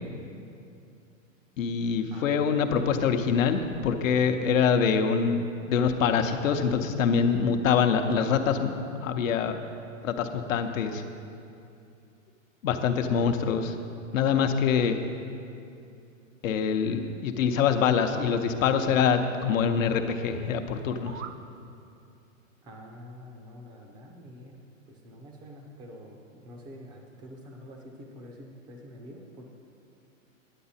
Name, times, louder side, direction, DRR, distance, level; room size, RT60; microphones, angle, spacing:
voice 1, 1.6-8.7 9.0-9.6 10.0-11.0 12.6-13.8 14.1-15.0 16.4-21.2, left 6 dB, 75° left, 7 dB, 0.8 m, -25 dB
voice 2, 2.1-2.7 22.6-24.6 24.9-29.5, equal, 10° right, 1 dB, 0.4 m, -47 dB
sound 1, 20.7-21.5, right 8 dB, 65° right, 0.6 m, -43 dB
10.0 x 7.9 x 4.2 m, 2.5 s
hypercardioid pair, 150°, 40 cm